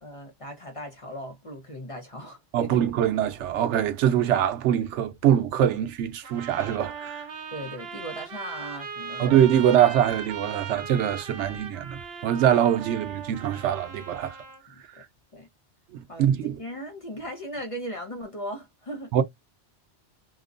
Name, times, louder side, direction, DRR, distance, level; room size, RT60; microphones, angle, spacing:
voice 1, 0.0-2.8 7.5-9.4 14.7-14.8 15.3-15.5 16.1-19.1, equal, 35° left, 0.6 m, -38 dB
voice 2, 2.5-7.2 9.2-14.4 15.9-16.5 19.1-19.2, right 10 dB, 90° right, 0.9 m, -23 dB
sound 1, 6.2-14.6, right 6 dB, 65° right, 1.0 m, -39 dB
2.8 x 2.1 x 2.4 m
omnidirectional pair, 1.2 m